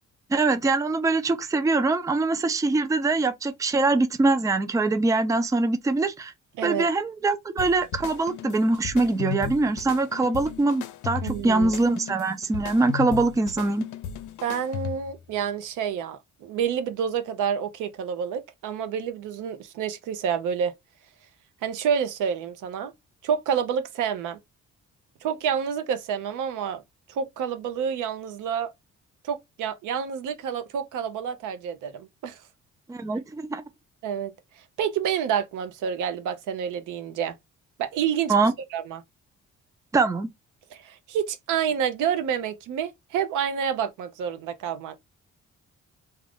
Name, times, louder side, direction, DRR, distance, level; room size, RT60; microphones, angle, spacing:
voice 1, 0.3-6.3 6.6-13.8 32.9-33.6 38.3-38.5 39.9-40.3, right 3 dB, 10° right, 0.4 m, -23 dB
voice 2, 6.6-6.9 11.2-11.7 14.4-20.7 21.6-22.9 23.2-24.4 25.2-26.8 27.1-28.7 29.2-32.4 34.0-34.3 34.8-37.3 37.8-38.3 38.7-39.0 40.7-45.0, right 8 dB, 85° right, 0.7 m, -28 dB
sound 1, 7.6-15.2, left 7 dB, 75° left, 0.5 m, -36 dB
2.5 x 2.3 x 3.4 m
cardioid pair, 90°, 30 cm